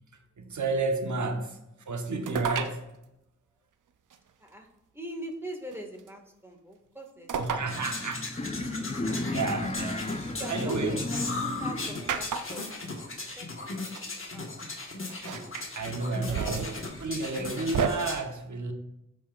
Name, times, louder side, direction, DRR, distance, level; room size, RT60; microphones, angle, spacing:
voice 1, 0.4-2.9 7.4-8.3 8.5-8.9 9.2-11.0 15.7-18.7, right 3 dB, 70° right, 5 dB, 1.1 m, -32 dB
sound 1, 2.3-2.8 4.1-4.2 5.7-6.1 7.3-7.7 8.1-8.2 9.6-10.8 12.1-12.7 13.7-13.8 13.9-14.1 15.1-15.7 16.1-17.9, right 6 dB, 90° right, 0.6 m, -32 dB
voice 2, 4.9-7.6 10.3-14.9 15.3-15.8 16.2-16.7, equal, 10° right, 2 dB, 1.8 m, -43 dB
sound 2, 7.7-18.2, left 3 dB, 45° left, 1.4 m, -38 dB
sound 3, 7.7-12.0, left 2 dB, 20° left, 0.6 m, -34 dB
13.5 x 4.7 x 2.5 m, 0.90 s
cardioid pair, 40°, 30 cm